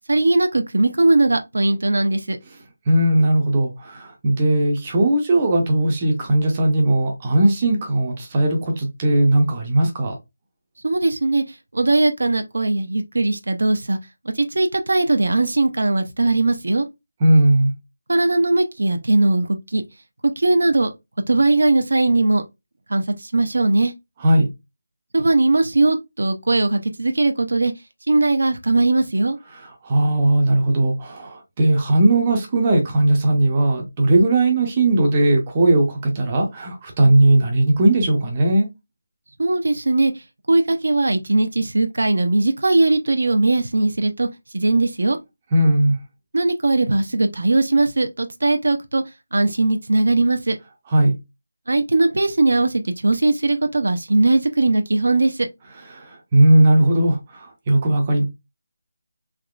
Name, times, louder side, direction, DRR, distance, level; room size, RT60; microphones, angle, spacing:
voice 1, 0.1-2.4 10.8-14.0 14.2-16.9 18.1-19.8 20.2-20.9 21.3-22.4 22.9-23.9 25.1-27.7 28.1-29.4 39.4-44.3 44.5-45.2 46.3-49.0 49.3-50.6 51.7-55.5, right 2 dB, 65° right, 0.5 m, -19 dB
voice 2, 2.9-10.1 17.2-17.7 24.2-24.5 29.8-38.7 45.5-46.0 50.9-51.2 55.9-58.2, right 1 dB, 20° right, 0.6 m, -18 dB
3.5 x 3.0 x 2.3 m
figure-of-eight pair, 175°, 0 cm